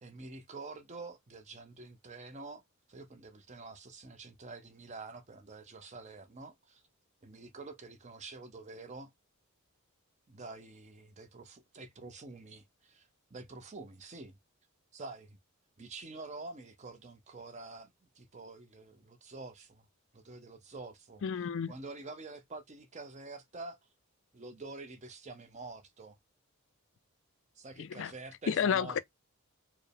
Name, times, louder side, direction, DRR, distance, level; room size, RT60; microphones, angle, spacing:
voice 1, 0.0-2.6 2.9-6.8 7.2-9.1 10.3-14.4 14.9-15.4 15.8-17.9 18.2-19.9 20.1-21.2 21.7-23.8 24.3-26.2 27.6-29.0, right 3 dB, 30° right, 0.6 m, -47 dB
voice 2, 21.2-21.7 27.8-28.1 28.5-29.0, left 7 dB, 60° left, 0.3 m, -31 dB
4.5 x 2.1 x 3.2 m
head